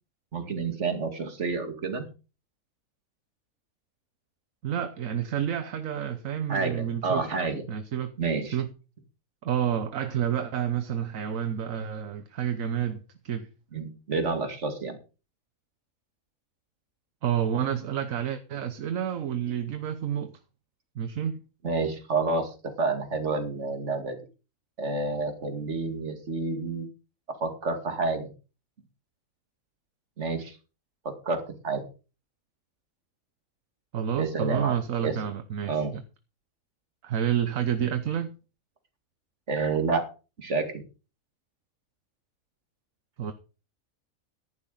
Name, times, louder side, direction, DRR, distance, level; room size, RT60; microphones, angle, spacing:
voice 1, 0.3-2.1 6.5-7.6 8.2-8.6 13.7-15.0 21.6-24.2 24.8-26.9 27.4-28.3 30.2-30.6 31.0-31.8 34.2-34.8 35.0-35.2 35.7-35.9 39.5-40.0 40.4-40.8, right 3 dB, 55° right, 6 dB, 2.5 m, -29 dB
voice 2, 4.6-7.2 7.7-8.1 8.4-8.7 9.4-13.5 17.2-20.3 21.0-21.4 33.9-36.0 37.0-38.3 43.2-43.3, right 9 dB, 75° right, 10 dB, 1.3 m, -29 dB
14.0 x 11.0 x 3.9 m, 0.33 s
omnidirectional pair, 1.4 m